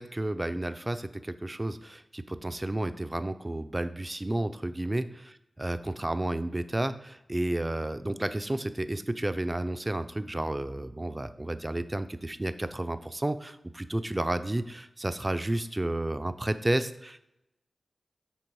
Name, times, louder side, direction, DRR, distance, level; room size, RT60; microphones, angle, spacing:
voice 1, 0.0-17.2, right 1 dB, 20° right, 11 dB, 0.4 m, -31 dB
10.0 x 3.4 x 4.6 m, 0.87 s
wide cardioid pair, 90°, 0 cm